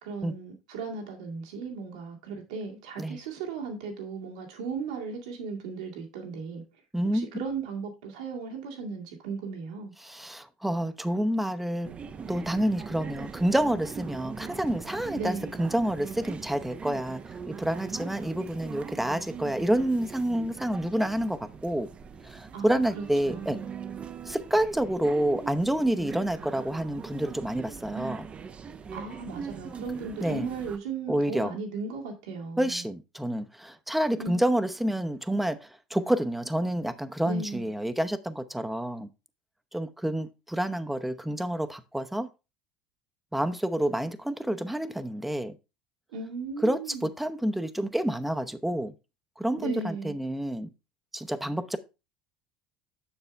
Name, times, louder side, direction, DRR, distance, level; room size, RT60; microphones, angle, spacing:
voice 1, 0.0-6.6 7.1-9.9 15.1-15.6 22.5-23.7 28.9-32.8 34.2-34.7 37.2-37.7 46.1-47.1 49.6-50.1, right 4 dB, 80° right, 2.1 m, -36 dB
voice 2, 6.9-7.3 10.0-11.9 12.3-21.9 22.2-23.6 24.3-28.3 30.2-30.5 31.1-31.6 32.6-39.1 39.7-42.3 43.3-45.5 46.6-48.9 49.4-50.7 51.1-51.8, right 1 dB, 5° right, 0.8 m, -28 dB
sound 1, 11.8-30.8, right 6 dB, 35° right, 0.7 m, -41 dB
7.1 x 6.7 x 3.3 m
hypercardioid pair, 70°, 4 cm